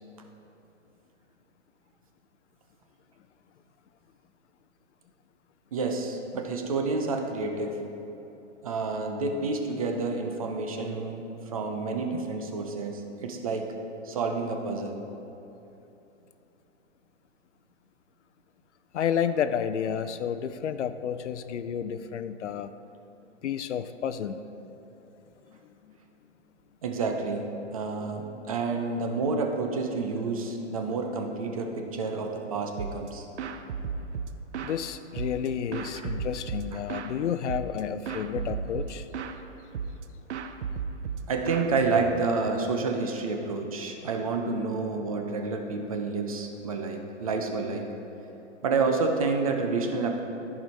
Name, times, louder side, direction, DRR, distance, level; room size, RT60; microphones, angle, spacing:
voice 1, 5.7-7.8 8.6-11.2 11.5-13.7 14.0-15.0 26.8-33.2 35.9-36.1 41.3-47.8 48.6-50.2, right 4 dB, 30° right, 3 dB, 0.6 m, -29 dB
voice 2, 18.9-22.7 23.4-24.5 34.6-39.1, left 8 dB, 75° left, 12 dB, 0.6 m, -31 dB
sound 1, 32.8-33.1 33.4-34.8 35.2-37.1 37.5-37.8 38.1-39.4 39.7-40.0 40.3-42.4, right 6 dB, 70° right, 0.7 m, -34 dB
14.0 x 4.9 x 4.1 m, 3.0 s
hypercardioid pair, 170°, 36 cm